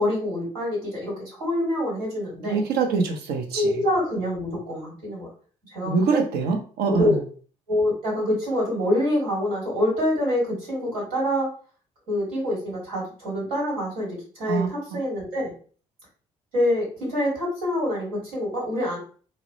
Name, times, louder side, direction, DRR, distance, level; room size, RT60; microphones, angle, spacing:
voice 1, 0.0-2.7 3.5-5.3 5.7-6.2 6.9-7.2 7.7-11.5 12.1-15.5 16.5-19.0, left 1 dB, 85° right, -4 dB, 1.3 m, -26 dB
voice 2, 2.4-3.7 5.9-7.2 14.5-14.7, right 4 dB, 70° right, 4 dB, 0.6 m, -24 dB
2.7 x 2.0 x 2.6 m, 0.42 s
hypercardioid pair, 45°, 17 cm